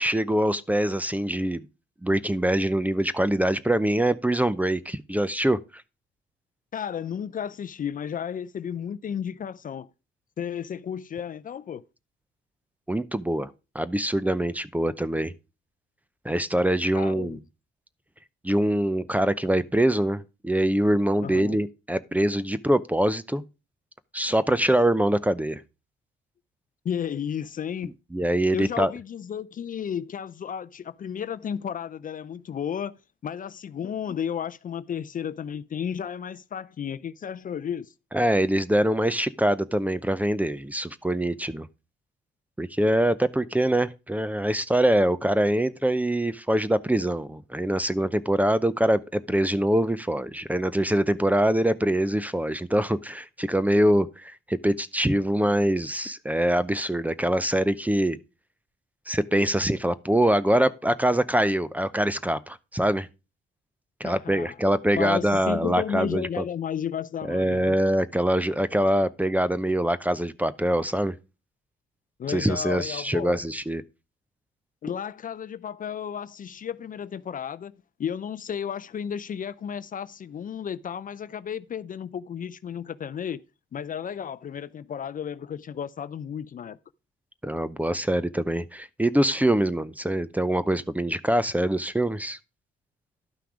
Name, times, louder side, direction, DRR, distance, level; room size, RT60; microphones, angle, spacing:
voice 1, 0.0-1.6 2.0-5.6 12.9-13.5 13.7-15.3 16.2-17.4 18.4-23.4 24.1-25.6 28.1-28.9 38.1-41.7 42.6-58.2 59.1-63.1 64.0-66.4 67.3-71.1 72.3-73.8 87.4-92.4, right 1 dB, 10° right, 0.6 m, -24 dB
voice 2, 6.7-9.9 10.4-11.8 16.9-17.4 21.2-21.6 26.8-27.9 28.5-32.9 33.2-37.9 64.0-64.6 65.0-67.8 72.2-73.4 74.8-83.4 83.7-86.8, left 8 dB, 45° left, 0.5 m, -33 dB
11.5 x 5.8 x 4.8 m
cardioid pair, 90°, 20 cm